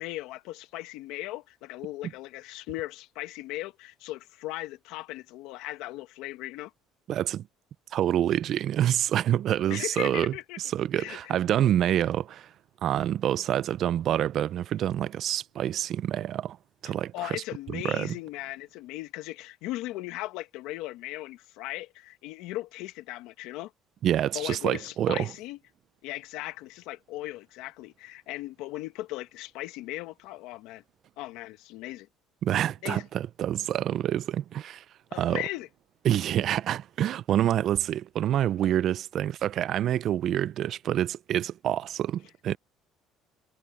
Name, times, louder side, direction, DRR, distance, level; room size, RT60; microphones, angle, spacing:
voice 1, 0.0-6.7 9.7-10.6 10.9-11.3 17.1-23.7 24.3-25.6 26.0-30.8 31.2-32.1 32.8-33.0 35.1-35.7, left 17 dB, 75° left, 1.3 m, -38 dB
voice 2, 7.1-7.4 7.9-12.5 12.8-16.6 16.8-17.4 17.7-18.1 24.0-25.3 32.4-34.8 35.1-35.4 36.0-42.6, right 11 dB, 45° right, 0.3 m, -27 dB
cardioid pair, 165°, 0 cm